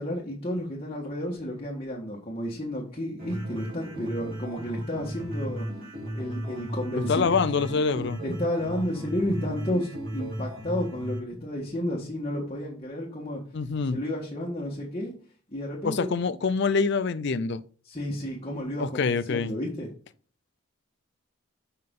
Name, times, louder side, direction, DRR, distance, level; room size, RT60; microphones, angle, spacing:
voice 1, 0.0-5.7 6.1-7.4 8.2-13.4 13.9-15.1 15.5-16.1 17.8-19.9, left 1 dB, 30° left, 1.6 m, -32 dB
sound 1, 3.2-11.2, equal, 45° right, 2.8 m, -35 dB
voice 2, 7.1-8.2 13.5-14.0 15.8-17.6 18.8-19.5, left 5 dB, 55° left, 0.5 m, -25 dB
7.6 x 5.5 x 3.7 m
head